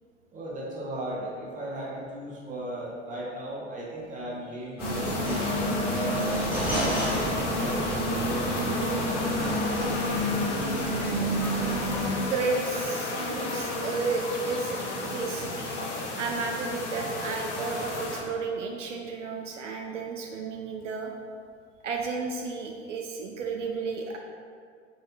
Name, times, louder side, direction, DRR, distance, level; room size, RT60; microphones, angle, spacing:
voice 1, 0.3-5.5 5.8-9.2, right 1 dB, 20° right, -4 dB, 0.8 m, -37 dB
sound 1, 4.8-18.2, left 2 dB, 70° left, 0.9 m, -32 dB
sound 2, 4.8-12.2, equal, 5° right, 1.3 m, -29 dB
voice 2, 12.2-15.5 16.2-21.1 21.8-24.2, right 4 dB, 75° right, 2 dB, 0.5 m, -32 dB
4.1 x 3.7 x 2.8 m, 2.2 s
figure-of-eight pair, 80°, 37 cm